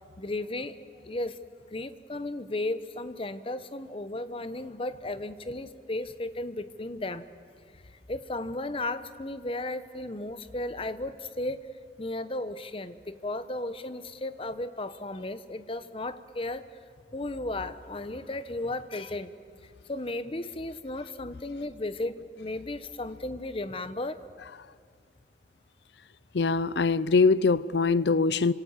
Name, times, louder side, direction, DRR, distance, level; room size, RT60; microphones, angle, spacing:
voice 1, 0.2-1.4 1.7-7.2 8.1-11.6 12.0-16.7 17.1-19.3 19.9-24.2, left 2 dB, 30° left, 0.9 m, -35 dB
voice 2, 26.3-28.5, left 4 dB, 75° left, 0.6 m, -23 dB
27.5 x 25.5 x 7.3 m
head